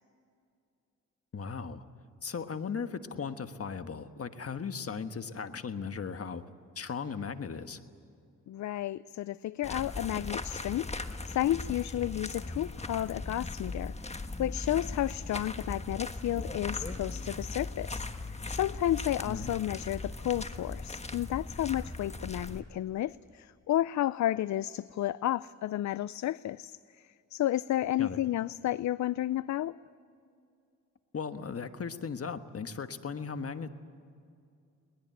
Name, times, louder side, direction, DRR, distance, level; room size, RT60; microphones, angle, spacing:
voice 1, 1.3-1.8 2.2-6.4 6.7-7.8 19.2-19.5 28.0-28.2 31.1-33.7, left 5 dB, 50° left, 9 dB, 1.4 m, -37 dB
voice 2, 8.5-10.9 11.3-29.8, left 13 dB, 65° left, 18 dB, 0.5 m, -32 dB
sound 1, 9.6-22.6, left 2 dB, 20° left, 1.4 m, -39 dB
22.0 x 19.5 x 9.2 m, 2.4 s
cardioid pair, 75°, 31 cm